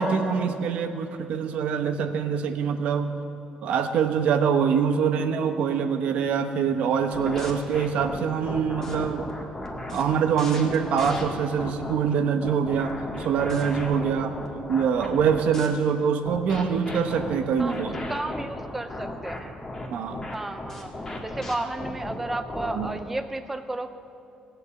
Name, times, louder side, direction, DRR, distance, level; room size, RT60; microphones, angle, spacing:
voice 1, 0.0-3.1 3.6-9.3 9.9-14.3 14.7-18.0 19.9-20.2 22.7-22.9, right 6 dB, 65° right, 7 dB, 0.9 m, -24 dB
sound 1, 7.1-11.9 12.4-15.7 16.3-23.0, left 2 dB, 20° left, 1.8 m, -35 dB
voice 2, 17.6-19.5 20.3-20.9 21.2-23.9, right 2 dB, 10° right, 8 dB, 0.4 m, -33 dB
17.5 x 6.8 x 8.4 m, 2.6 s
cardioid pair, 150°, 2 cm